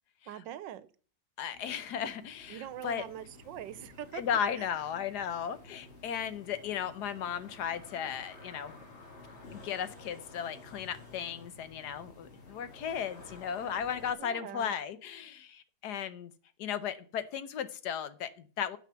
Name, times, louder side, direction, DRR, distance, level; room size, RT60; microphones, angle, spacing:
voice 1, 0.3-0.9 2.5-4.2 4.6-4.7 14.2-14.7, right 11 dB, 85° right, 15 dB, 1.4 m, -43 dB
voice 2, 1.4-3.0 4.1-8.7 9.5-16.3 16.6-18.8, left 8 dB, 70° left, 13 dB, 1.3 m, -35 dB
sound 1, 1.5-14.1, left 2 dB, 40° left, 2.4 m, -52 dB
9.3 x 5.0 x 6.8 m, 0.41 s
omnidirectional pair, 1.9 m